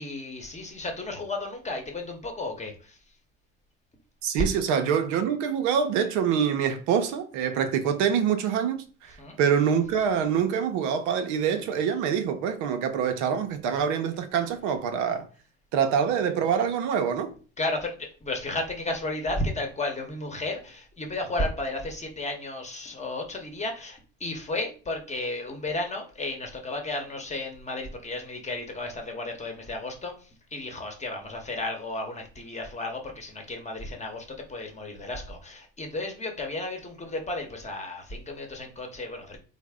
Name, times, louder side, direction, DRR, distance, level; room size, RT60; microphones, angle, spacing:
voice 1, 0.0-3.0 9.2-9.4 17.6-39.4, left 2 dB, 20° left, 0.9 m, -33 dB
voice 2, 4.2-15.3 15.7-17.3, right 7 dB, 70° right, 0.6 m, -25 dB
3.1 x 2.1 x 3.5 m
supercardioid pair, 80°, 31 cm